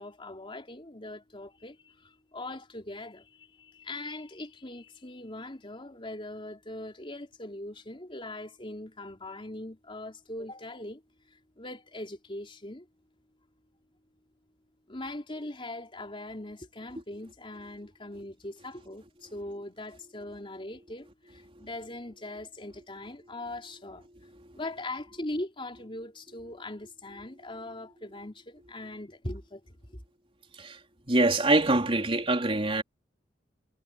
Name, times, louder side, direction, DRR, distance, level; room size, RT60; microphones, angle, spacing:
voice 1, 0.0-11.0 11.6-12.9 14.9-24.1 24.5-30.0, left 1 dB, 30° left, 3.7 m, -41 dB
voice 2, 31.1-32.8, right 2 dB, 30° right, 3.7 m, -24 dB
head